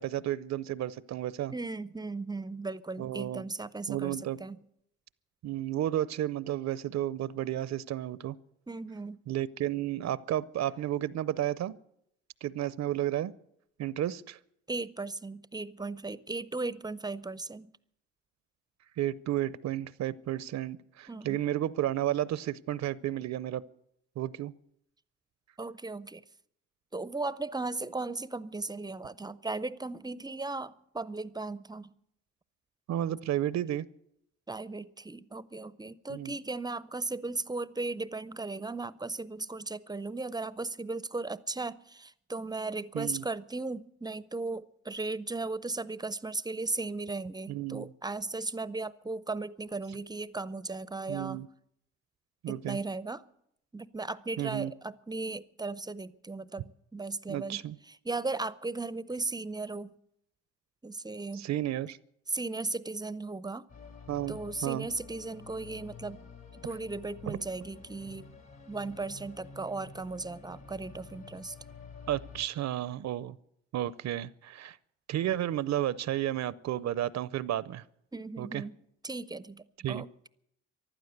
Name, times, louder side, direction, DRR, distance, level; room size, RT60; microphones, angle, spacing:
voice 1, 0.0-1.5 3.0-3.4 3.9-4.4 5.4-8.4 9.3-11.8 12.4-13.3 13.8-14.4 19.0-23.6 24.2-24.5 32.9-33.9 36.1-36.3 42.9-43.2 47.5-47.9 51.1-51.5 52.4-52.8 54.4-54.7 57.3-57.8 61.3-62.0 64.1-64.9 67.3-67.4 72.1-73.4 73.7-74.8 75.1-77.8 78.4-78.6 79.8-80.0, right 12 dB, 60° right, 19 dB, 0.6 m, -32 dB
voice 2, 1.5-4.6 8.7-9.2 14.7-17.7 21.1-21.4 25.6-26.2 26.9-31.9 34.5-51.4 52.5-53.2 53.7-59.9 60.8-61.5 62.3-63.7 64.3-66.2 66.5-68.3 68.7-71.6 78.1-78.7 79.0-80.1, right 3 dB, 15° right, 17 dB, 0.5 m, -36 dB
sound 1, 63.7-72.5, left 5 dB, 60° left, 3.6 m, -49 dB
15.0 x 11.5 x 8.0 m, 0.75 s
cardioid pair, 90°, 30 cm